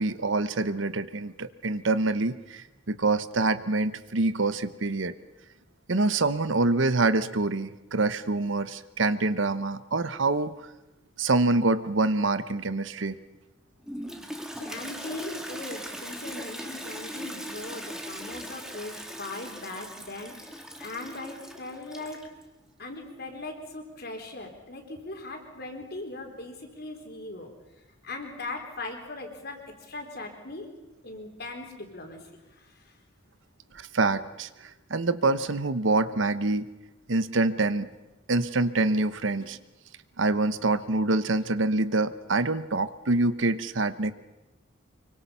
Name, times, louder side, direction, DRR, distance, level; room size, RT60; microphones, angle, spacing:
voice 1, 0.0-5.1 5.9-10.5 11.2-13.2 33.7-34.5 34.9-36.6 37.1-37.9 38.3-39.6 40.2-44.1, right 3 dB, 70° right, 14 dB, 1.0 m, -26 dB
Toilet flush, 13.8-22.4, equal, 5° right, 1.9 m, -39 dB
voice 2, 14.6-22.3 22.8-27.5 28.0-30.7 31.0-32.9, left 2 dB, 50° left, 3 dB, 3.9 m, -39 dB
25.0 x 23.5 x 5.6 m, 1.0 s
head